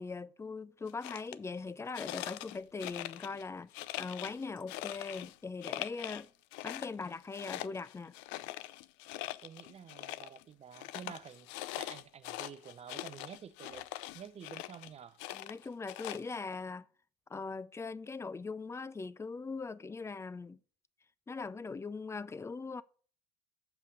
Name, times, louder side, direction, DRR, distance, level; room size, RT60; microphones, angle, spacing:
voice 1, 0.0-3.7 4.0-6.3 6.6-8.1 11.1-11.2 15.3-16.9 17.3-20.6 21.3-22.8, left 4 dB, 15° left, 0.4 m, -41 dB
sound 1, 0.9-1.4 1.9-3.4 3.7-5.4 5.6-6.2 6.5-10.4 10.7-14.9 15.2-16.6, left 16 dB, 65° left, 0.5 m, -43 dB
voice 2, 9.4-11.5 11.8-13.9 14.1-15.2, right 8 dB, 30° right, 0.7 m, -49 dB
7.1 x 5.5 x 6.2 m
hypercardioid pair, 85°, 21 cm